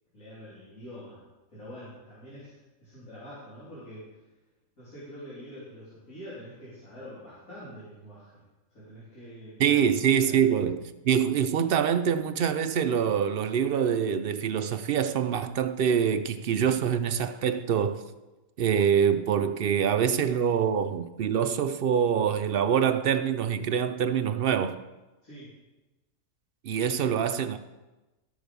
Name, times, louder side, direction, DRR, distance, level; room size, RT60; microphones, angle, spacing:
voice 1, 0.1-4.2 4.8-8.4 8.7-10.0 10.3-10.4 17.4-17.5 25.2-25.5 26.9-27.5, equal, 80° left, 3.5 m, -46 dB
voice 2, 9.6-18.0 18.6-24.8 26.6-27.6, right 8 dB, 65° right, 0.5 m, -25 dB
12.5 x 6.4 x 5.2 m
omnidirectional pair, 1.5 m